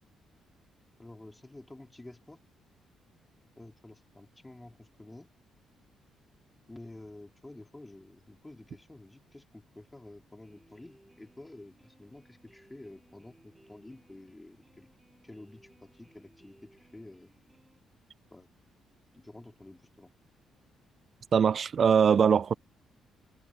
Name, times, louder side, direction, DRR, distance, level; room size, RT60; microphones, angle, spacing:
voice 1, 1.0-2.4 3.6-5.3 6.7-14.9 15.2-17.3 18.3-18.5 19.1-20.1, left 2 dB, 15° left, 3.5 m, -50 dB
sound 1, 10.4-17.8, right 1 dB, 5° right, 7.4 m, -62 dB
voice 2, 21.3-22.5, right 7 dB, 50° right, 0.4 m, -22 dB
cardioid pair, 90°, 0 cm